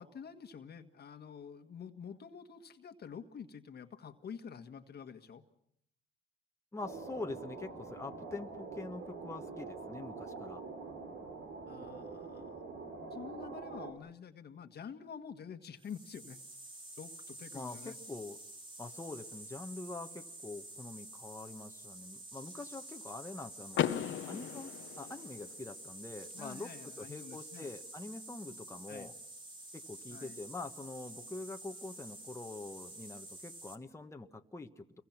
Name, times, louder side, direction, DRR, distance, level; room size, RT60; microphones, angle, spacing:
voice 1, 0.0-5.4 11.7-12.6 13.1-16.4 17.0-18.0 26.3-27.7 28.9-29.1 30.1-30.4, left 7 dB, 55° left, 7 dB, 1.7 m, -48 dB
voice 2, 6.7-10.6 17.5-18.4 18.8-23.8 24.3-24.7 25.0-26.7 27.0-29.1 29.7-35.0, left 3 dB, 15° left, 4 dB, 1.4 m, -45 dB
sound 1, 6.8-13.9, right 4 dB, 75° right, 4.1 m, -45 dB
sound 2, 15.8-33.8, right 1 dB, 25° right, 2.7 m, -49 dB
Car / Door, 23.7-25.7, left 11 dB, 75° left, 1.1 m, -36 dB
29.0 x 22.5 x 6.0 m, 0.70 s
cardioid pair, 90°, 20 cm